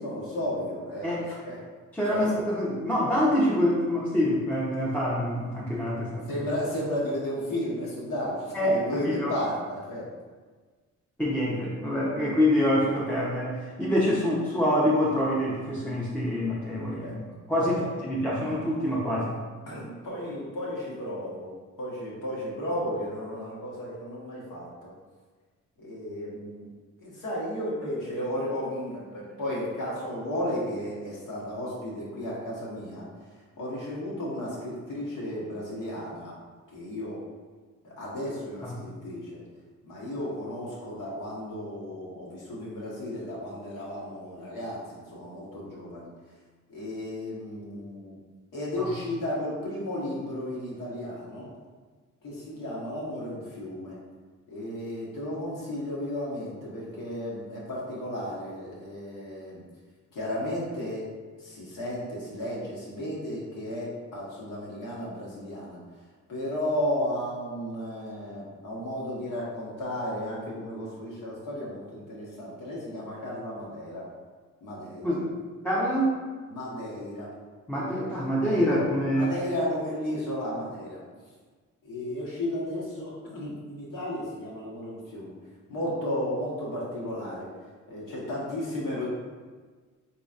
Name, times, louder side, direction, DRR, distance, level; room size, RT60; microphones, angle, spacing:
voice 1, 0.0-1.6 2.0-2.2 6.3-10.1 17.0-17.2 17.6-17.7 19.7-24.9 25.8-26.6 27.0-33.1 33.6-36.3 36.7-37.2 37.8-39.4 39.8-46.1 46.7-48.2 48.5-51.5 52.2-54.0 54.5-59.6 60.1-61.1 61.4-65.8 66.3-74.0 74.6-75.1 76.5-77.3 79.1-81.0 81.8-85.3 85.7-87.5 87.9-89.1, left 1 dB, 75° left, -5 dB, 1.3 m, -34 dB
voice 2, 1.9-6.3 8.5-9.3 11.2-17.2 17.5-19.4 38.6-38.7 48.8-48.9 75.0-75.3 75.6-76.1 77.7-79.3, equal, 5° left, -7 dB, 0.6 m, -26 dB
3.9 x 3.0 x 2.4 m, 1.4 s
cardioid pair, 70°, 33 cm